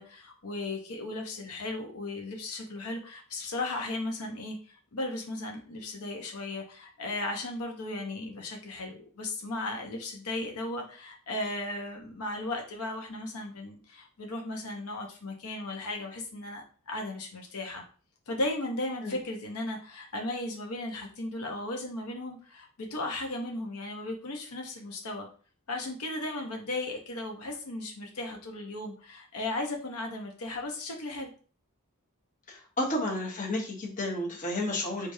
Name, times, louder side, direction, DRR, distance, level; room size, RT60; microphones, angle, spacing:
voice 1, 0.0-17.8 18.3-25.3 25.7-31.3, left 2 dB, 80° left, 2 dB, 0.8 m, -36 dB
voice 2, 32.5-35.1, left 1 dB, 35° left, -1 dB, 0.9 m, -32 dB
4.7 x 2.5 x 2.7 m, 0.40 s
head